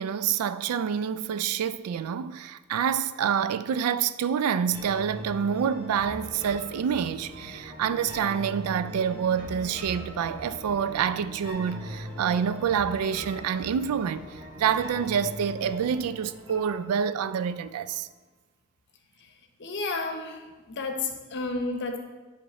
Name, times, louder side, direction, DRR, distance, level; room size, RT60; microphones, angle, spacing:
voice 1, 0.0-18.1, right 7 dB, 80° right, 0.3 m, -27 dB
sound 1, 4.7-17.7, equal, 25° right, 1.4 m, -41 dB
voice 2, 19.6-22.0, left 3 dB, 55° left, 0.8 m, -31 dB
10.0 x 3.6 x 4.1 m
head